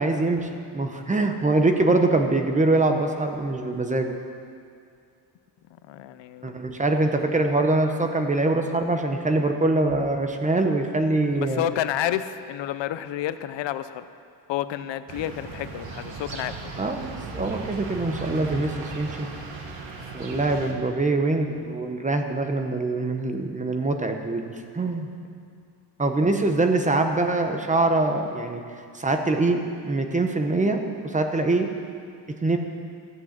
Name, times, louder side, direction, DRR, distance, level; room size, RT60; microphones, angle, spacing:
voice 1, 0.0-4.2 6.4-11.6 16.8-19.3 20.1-25.1 26.0-28.6 28.9-31.7 32.4-32.6, right 2 dB, 15° right, 5 dB, 0.8 m, -24 dB
voice 2, 5.9-6.5 11.3-14.1 14.5-16.7 19.2-19.4 25.5-25.6, left 11 dB, 85° left, 13 dB, 0.7 m, -30 dB
sound 1, 15.1-20.7, right 4 dB, 85° right, 1.7 m, -37 dB
14.0 x 8.5 x 7.3 m, 2.3 s
cardioid pair, 165°, 43 cm